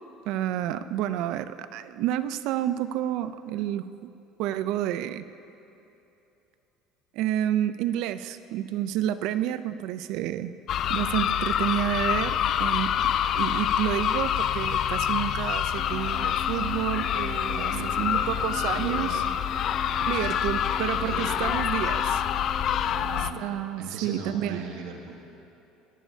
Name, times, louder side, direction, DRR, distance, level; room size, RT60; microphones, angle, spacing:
voice 1, 0.3-4.1 4.4-5.3 7.1-10.5 10.9-19.2 20.1-22.2 23.4-24.6, right 12 dB, 65° right, 13 dB, 0.5 m, -30 dB
sound 1, 10.7-23.3, left 9 dB, 45° left, 0.4 m, -26 dB
sound 2, 15.8-23.2, equal, 10° left, 2.6 m, -42 dB
voice 2, 17.5-19.3 20.1-20.3 20.9-21.4 22.9-23.5 23.8-25.2, right 4 dB, 85° right, 0 dB, 1.3 m, -39 dB
21.5 x 13.0 x 2.8 m, 2.9 s
cardioid pair, 140°, 0 cm